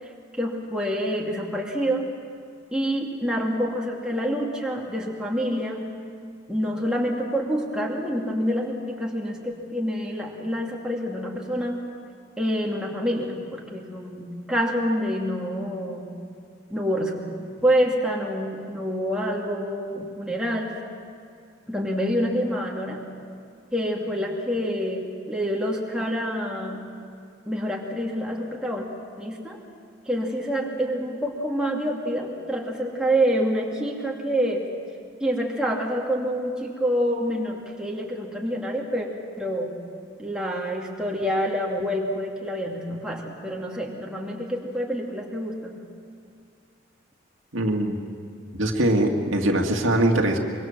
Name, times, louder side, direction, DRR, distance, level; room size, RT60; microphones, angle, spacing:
voice 1, 0.0-2.1 2.7-5.8 6.5-11.8 12.4-16.1 16.7-17.2 17.6-20.7 21.7-23.0 23.7-26.9 27.5-28.9 29.2-29.6 30.1-34.7 35.2-39.1 39.4-39.8 40.2-45.8, equal, 5° right, -2 dB, 2.6 m, -27 dB
voice 2, 47.5-48.0 48.5-50.4, right 1 dB, 85° right, 2 dB, 2.3 m, -22 dB
24.0 x 23.5 x 7.5 m, 2.3 s
head